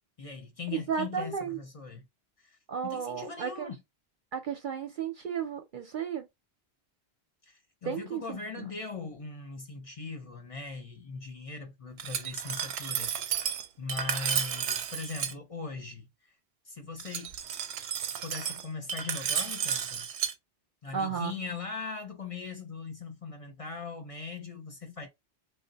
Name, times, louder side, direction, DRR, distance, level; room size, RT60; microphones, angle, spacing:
voice 1, 0.2-2.1 2.4-3.8 7.4-16.3 16.7-17.3 18.2-20.1 20.8-25.1, left 4 dB, 40° left, 0.5 m, -40 dB
voice 2, 0.7-1.6 2.7-3.7 4.3-6.3 7.8-8.7 20.9-21.4, right 7 dB, 60° right, 0.6 m, -34 dB
Glass, 12.0-15.3 17.0-20.3, right 8 dB, 90° right, 0.9 m, -32 dB
3.0 x 2.0 x 3.9 m
omnidirectional pair, 1.1 m